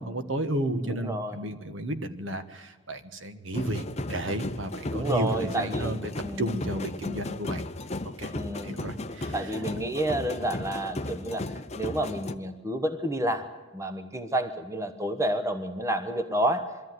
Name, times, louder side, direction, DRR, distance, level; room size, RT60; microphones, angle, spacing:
voice 1, 0.0-6.1 6.4-7.6 8.2-8.3 8.6-9.6, right 1 dB, 70° right, 9 dB, 1.4 m, -32 dB
voice 2, 0.9-1.4 4.9-6.5 8.3-8.8 9.3-11.4 11.7-16.8, right 1 dB, 15° right, 9 dB, 1.1 m, -30 dB
sound 1, 3.5-12.4, left 2 dB, 30° left, 0.7 m, -35 dB
22.5 x 14.0 x 9.4 m, 1.3 s
head